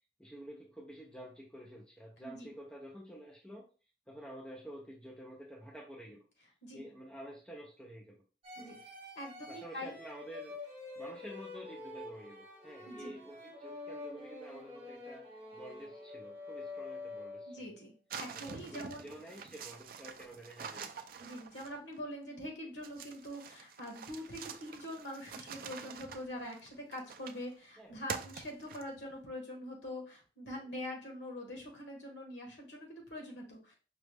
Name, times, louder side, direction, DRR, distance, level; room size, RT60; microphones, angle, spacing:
voice 1, 0.2-3.7 4.1-6.2 6.7-8.2 8.6-8.8 9.5-10.6 11.0-15.3 15.5-17.7 18.3-20.9 27.8-28.0, equal, 5° left, -2 dB, 0.6 m, -50 dB
voice 2, 2.2-2.5 6.6-6.8 8.5-8.7 9.1-10.0 12.8-13.1 17.5-19.1 21.2-33.7, left 1 dB, 90° left, 0 dB, 1.6 m, -44 dB
sound 1, 8.4-17.8, left 2 dB, 35° right, 1.3 m, -47 dB
sound 2, 18.1-22.0 22.8-27.5 28.1-29.1, right 6 dB, 55° right, 0.4 m, -46 dB
5.2 x 2.3 x 3.3 m, 0.35 s
head